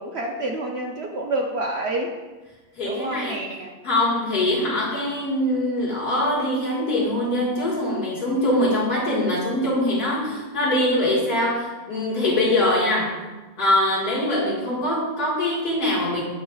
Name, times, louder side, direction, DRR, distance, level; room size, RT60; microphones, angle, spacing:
voice 1, 0.0-2.2 2.8-3.7, right 1 dB, 60° right, 1 dB, 0.7 m, -28 dB
voice 2, 2.8-3.4 3.8-13.2 13.6-16.2, left 1 dB, 85° left, -5 dB, 2.3 m, -23 dB
9.3 x 5.8 x 2.3 m, 1.2 s
omnidirectional pair, 1.6 m